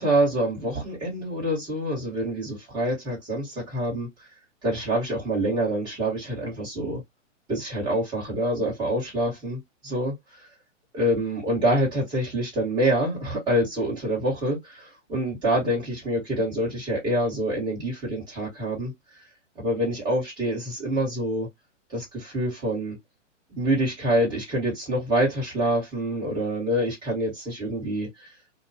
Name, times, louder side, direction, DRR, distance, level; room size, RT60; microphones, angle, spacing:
voice 1, 0.0-4.1 4.6-7.0 7.5-10.1 10.9-18.9 19.6-21.5 21.9-23.0 23.5-28.1, right 1 dB, 10° right, 1.5 m, -26 dB
2.6 x 2.3 x 2.6 m
hypercardioid pair, 160°, 37 cm